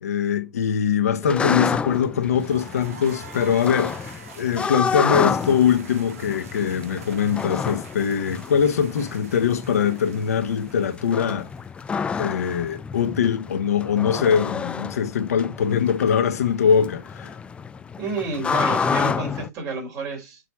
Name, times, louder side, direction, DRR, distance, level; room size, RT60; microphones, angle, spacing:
voice 1, 0.0-11.4 12.2-17.4, left 7 dB, 70° left, 1.1 m, -22 dB
sound 1, 1.2-19.5, left 6 dB, 15° left, 0.3 m, -29 dB
sound 2, 2.4-12.2, right 5 dB, 65° right, 1.8 m, -45 dB
voice 2, 18.0-20.4, right 3 dB, 40° right, 3.3 m, -30 dB
6.4 x 4.1 x 4.6 m
figure-of-eight pair, 105°, 9 cm